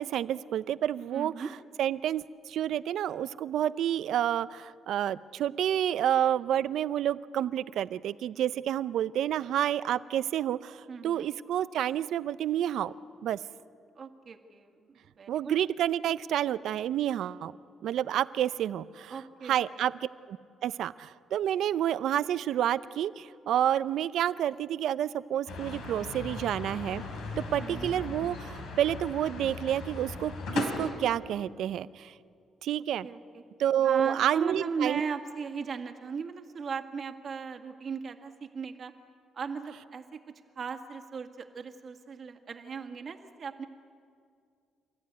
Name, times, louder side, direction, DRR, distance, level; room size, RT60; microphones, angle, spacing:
voice 1, 0.0-1.5 1.8-12.9 13.2-13.4 15.3-17.5 17.8-19.1 19.4-20.4 20.6-27.0 27.4-32.1 32.6-33.1 33.6-35.0, right 11 dB, 75° right, 16 dB, 0.6 m, -29 dB
voice 2, 1.1-1.5 10.9-11.3 14.0-15.6 19.1-19.8 27.6-27.9 33.0-33.4 33.8-38.9 39.3-40.2 40.6-43.7, right 5 dB, 50° right, 5 dB, 2.0 m, -37 dB
sound 1, 25.5-30.9, left 3 dB, 85° left, 4.4 m, -37 dB
28.5 x 14.5 x 9.5 m, 2.3 s
cardioid pair, 90°, 0 cm